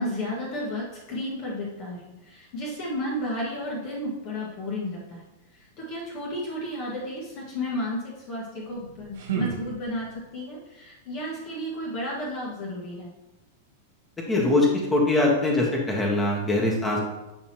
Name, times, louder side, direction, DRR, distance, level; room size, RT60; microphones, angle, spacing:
voice 1, 0.0-5.2 5.5-13.1, left 1 dB, 40° left, -5 dB, 1.7 m, -33 dB
sound 1, 8.6-10.3, right 7 dB, 60° right, 1.2 m, -34 dB
voice 2, 14.3-17.0, left 2 dB, 15° left, -1 dB, 1.6 m, -22 dB
8.5 x 4.2 x 3.0 m, 1.0 s
figure-of-eight pair, 95°, 0 cm